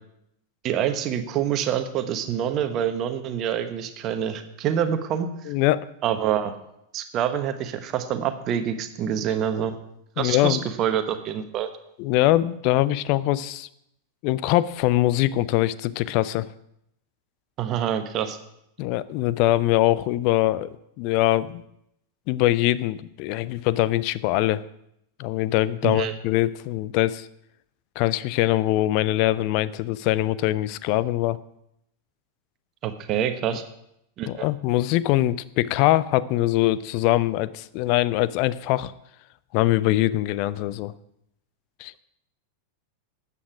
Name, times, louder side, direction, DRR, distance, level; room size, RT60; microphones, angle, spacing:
voice 1, 0.6-5.3 6.0-6.5 6.9-9.8 10.2-11.7 17.6-18.4 25.8-26.1 32.8-33.6 34.2-34.5, right 9 dB, 35° right, 9 dB, 1.2 m, -26 dB
voice 2, 5.5-5.8 10.2-10.6 12.0-13.7 14.2-16.5 18.8-21.6 22.3-24.6 25.2-27.3 28.0-31.4 34.3-38.9 39.5-40.9 41.8-42.0, left 16 dB, 45° left, 17 dB, 0.5 m, -23 dB
13.0 x 8.6 x 4.9 m, 0.78 s
figure-of-eight pair, 90°, 0 cm